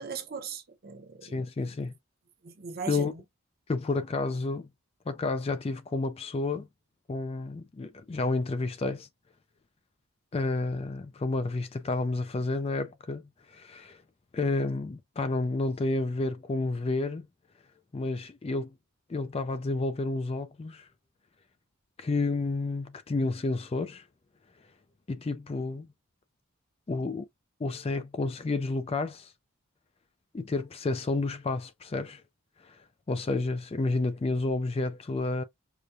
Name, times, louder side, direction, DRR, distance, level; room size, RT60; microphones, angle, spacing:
voice 1, 0.0-1.4 2.4-3.2, right 5 dB, 45° right, 0.8 m, -39 dB
voice 2, 1.2-1.9 2.9-3.1 3.7-4.7 5.1-6.7 7.1-9.1 10.3-13.2 13.5-14.0 14.3-17.3 17.9-18.7 19.1-20.9 22.0-24.0 25.1-25.9 26.9-27.2 27.6-29.3 30.3-32.2 32.6-32.8 33.1-35.4, left 3 dB, 25° left, 0.3 m, -30 dB
4.9 x 2.1 x 2.6 m
head